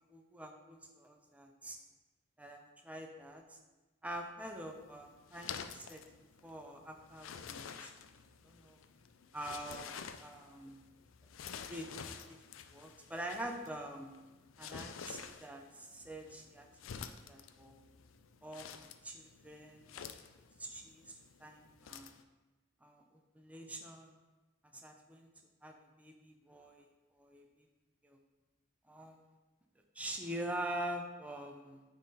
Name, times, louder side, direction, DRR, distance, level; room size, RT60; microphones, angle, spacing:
voice 1, 0.1-1.8 2.4-3.6 4.0-6.0 6.4-7.9 8.4-8.8 9.3-9.9 10.2-10.8 11.5-12.4 12.7-14.1 14.6-16.7 17.3-17.8 18.4-20.1 20.6-22.1 22.8-23.0 23.3-24.2 24.8-25.3 25.6-26.8 27.2-27.5 28.0-28.2 28.9-29.2 29.9-31.8, right 1 dB, 5° right, 2 dB, 0.6 m, -45 dB
sound 1, 4.4-22.2, left 7 dB, 85° left, 0.4 m, -50 dB
9.4 x 3.8 x 4.1 m, 1.1 s
head